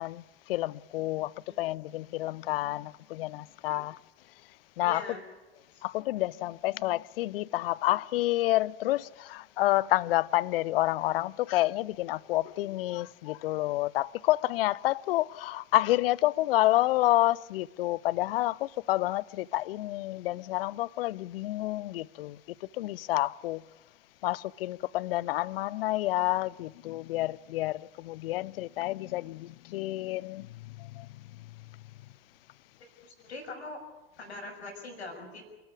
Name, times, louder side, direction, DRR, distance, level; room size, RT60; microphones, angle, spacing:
voice 1, 0.0-1.3 1.6-4.0 4.8-5.0 5.8-22.4 22.8-23.6 24.2-31.1, left 17 dB, 60° left, 0.7 m, -29 dB
voice 2, 4.8-5.2 5.7-5.8 33.0-33.8 34.2-35.4, left 2 dB, 75° left, 6.6 m, -42 dB
28.0 x 13.0 x 9.6 m
figure-of-eight pair, 80°, 33 cm